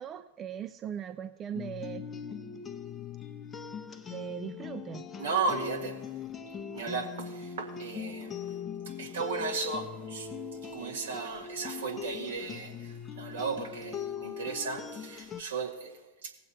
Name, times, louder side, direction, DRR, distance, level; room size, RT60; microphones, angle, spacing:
voice 1, 0.0-2.0 4.1-5.1, right 9 dB, 30° right, 0.4 m, -39 dB
sound 1, 1.5-15.4, left 7 dB, 25° left, 0.8 m, -40 dB
voice 2, 5.2-6.0 6.7-8.5 8.9-10.3 10.6-16.3, right 5 dB, 70° right, 1.8 m, -35 dB
17.5 x 7.7 x 4.2 m
figure-of-eight pair, 90°, 0 cm